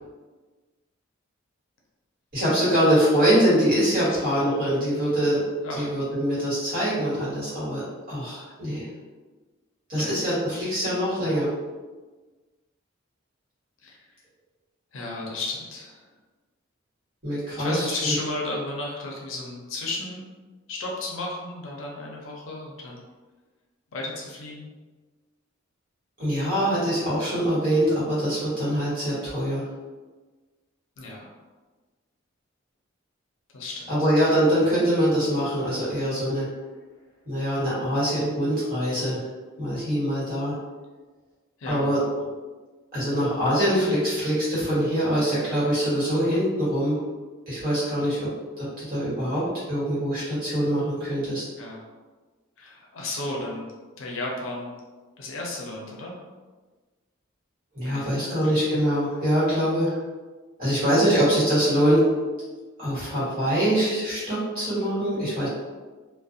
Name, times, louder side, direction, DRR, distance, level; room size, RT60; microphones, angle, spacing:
voice 1, 2.3-5.4 5.7-8.9 9.9-11.5 17.2-18.1 26.2-29.6 33.9-36.4 37.2-39.2 39.6-40.5 41.7-42.0 42.9-47.0 47.5-48.3 48.6-49.4 49.7-51.4 57.7-60.0 60.6-62.0 62.8-65.5, equal, 45° right, -10 dB, 1.4 m, -24 dB
voice 2, 14.9-16.1 17.6-20.2 20.7-23.0 23.9-24.7 31.0-31.3 33.5-34.1 41.6-41.9 51.6-51.8 52.6-53.7 54.0-54.7 55.2-56.2 57.8-58.9 60.8-61.0, left 2 dB, 70° left, -2 dB, 0.5 m, -34 dB
2.4 x 2.1 x 2.6 m, 1.3 s
head